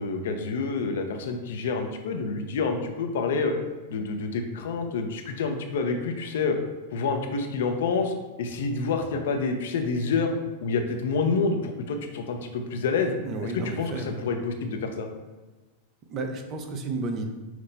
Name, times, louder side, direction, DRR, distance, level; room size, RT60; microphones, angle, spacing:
voice 1, 0.0-3.5 3.9-6.6 6.9-10.3 10.6-13.2 13.4-15.1, left 4 dB, 75° left, 5 dB, 0.6 m, -28 dB
voice 2, 13.2-14.2 16.1-17.3, right 3 dB, 40° right, 5 dB, 0.7 m, -32 dB
5.9 x 2.1 x 4.0 m, 1.2 s
hypercardioid pair, 115°, 0 cm